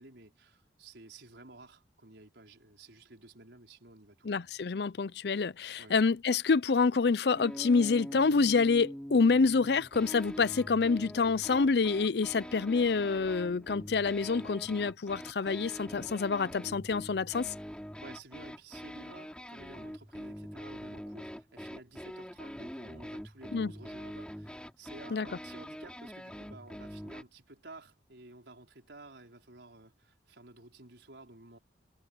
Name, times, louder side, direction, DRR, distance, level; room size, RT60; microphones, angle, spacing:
voice 1, 0.0-4.6 5.8-6.0 18.0-31.6, right 2 dB, 80° right, 4.7 m, -53 dB
voice 2, 4.2-17.5 23.5-23.7 25.1-25.3, left 4 dB, 65° left, 0.5 m, -27 dB
sound 1, 7.4-27.2, equal, 5° left, 4.0 m, -44 dB
head